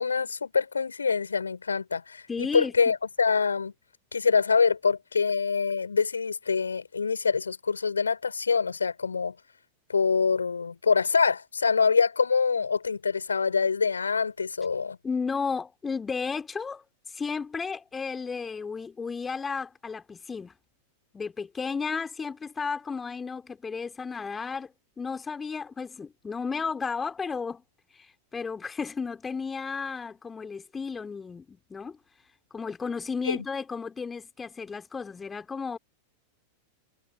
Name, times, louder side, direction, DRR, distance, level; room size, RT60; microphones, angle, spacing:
voice 1, 0.0-3.7 4.1-9.3 9.9-15.0 33.2-33.4, left 5 dB, 75° left, 6.2 m, -25 dB
voice 2, 2.3-2.7 15.0-20.5 21.1-27.6 27.9-32.0 32.5-35.8, left 5 dB, 15° left, 3.5 m, -33 dB
figure-of-eight pair, 90°, 0 cm